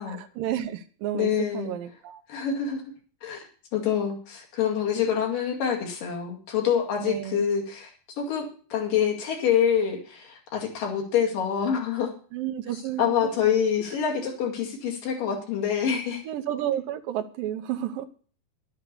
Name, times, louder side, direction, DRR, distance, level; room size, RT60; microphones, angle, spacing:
voice 1, 0.1-2.2 7.0-7.4 12.3-13.3 16.2-18.1, right 11 dB, 75° right, 8 dB, 2.4 m, -31 dB
voice 2, 1.1-1.7 2.3-2.8 3.2-3.4 3.7-12.1 13.0-16.2, left 8 dB, 65° left, 2 dB, 3.7 m, -26 dB
11.0 x 8.1 x 6.8 m, 0.41 s
omnidirectional pair, 4.2 m